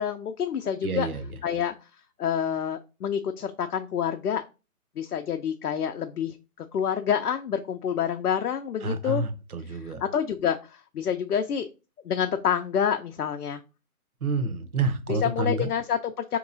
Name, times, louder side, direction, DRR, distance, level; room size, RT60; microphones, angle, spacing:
voice 1, 0.0-1.1 1.4-1.7 2.2-4.4 5.0-9.2 9.7-11.7 12.0-13.6 15.1-16.4, left 8 dB, 75° left, 0.6 m, -28 dB
voice 2, 0.8-1.2 8.8-10.0 14.2-15.7, right 3 dB, 70° right, 0.9 m, -28 dB
4.7 x 2.9 x 2.6 m
hypercardioid pair, 165°, 45 cm